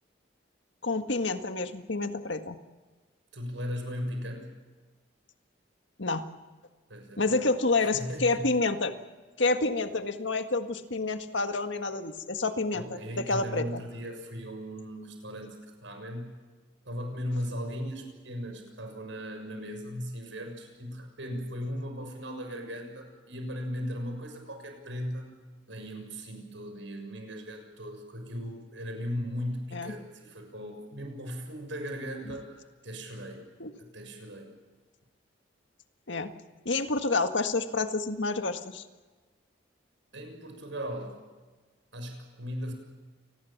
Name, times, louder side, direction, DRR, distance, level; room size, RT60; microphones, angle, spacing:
voice 1, 0.8-2.6 6.0-6.3 7.2-8.9 9.4-13.8 29.7-29.9 32.3-32.4 33.6-33.7 36.1-36.3 36.6-38.8, left 3 dB, 75° left, 7 dB, 1.8 m, -29 dB
voice 2, 3.3-4.4 6.9-7.4 7.8-8.5 12.7-16.4 16.8-25.3 25.7-33.5 33.8-34.6 40.1-41.2 41.9-42.7, equal, 80° right, 5 dB, 6.7 m, -37 dB
28.5 x 20.5 x 7.4 m, 1.3 s
head